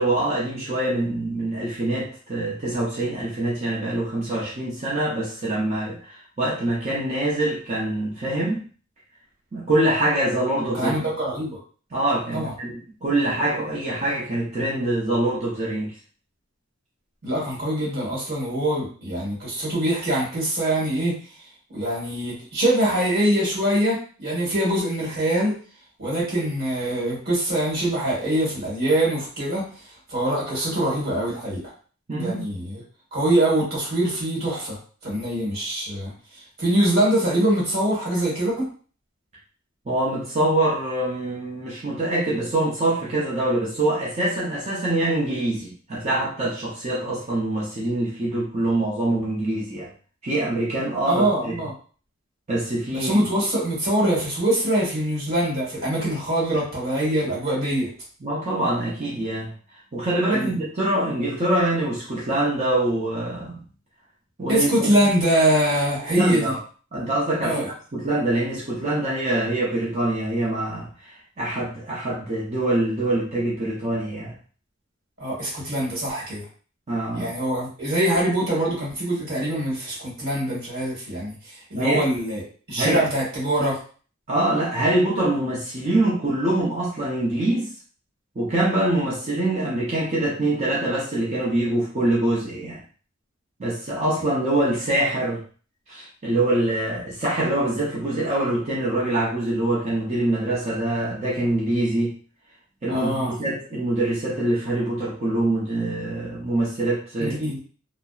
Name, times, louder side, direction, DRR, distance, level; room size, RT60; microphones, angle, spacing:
voice 1, 0.0-8.6 9.5-10.9 11.9-15.9 32.1-32.6 39.9-49.9 50.2-51.5 52.5-53.3 58.2-59.5 59.9-63.6 64.4-64.9 66.1-66.6 66.9-67.6 67.9-74.4 76.9-77.3 81.7-82.0 82.7-83.0 84.3-87.7 88.4-92.8 93.6-95.4 95.9-102.1 102.8-107.6, right 1 dB, 35° right, -6 dB, 0.6 m, -24 dB
voice 2, 10.7-11.6 12.3-12.5 17.2-21.2 21.7-25.6 26.0-29.7 30.1-31.6 32.1-32.8 33.1-34.8 35.0-36.1 36.6-38.7 51.0-51.7 52.9-57.9 60.3-60.5 64.5-66.5 67.4-67.7 75.2-76.5 77.1-82.4 82.7-83.8 102.9-103.3 107.2-107.6, right 1 dB, 50° right, -5 dB, 1.3 m, -23 dB
2.6 x 2.0 x 2.3 m, 0.40 s
head